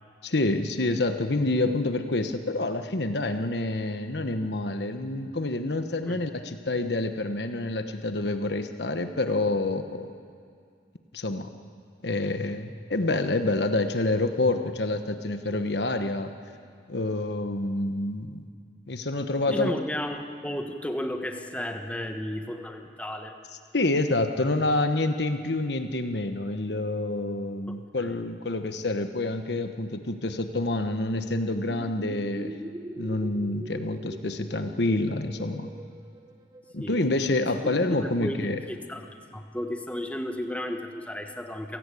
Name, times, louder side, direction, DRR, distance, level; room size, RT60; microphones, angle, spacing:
voice 1, 0.2-10.1 11.1-11.5 12.0-16.3 16.9-18.5 18.9-19.7 23.7-32.5 33.0-35.7 36.7-38.6, left 2 dB, 70° left, 8 dB, 1.2 m, -27 dB
voice 2, 19.5-23.3 28.0-28.1 36.8-37.0 37.9-41.8, left 1 dB, 10° left, 4 dB, 1.3 m, -33 dB
sound 1, 31.6-36.9, equal, 20° right, 1.2 m, -41 dB
29.0 x 17.5 x 8.5 m, 2.3 s
head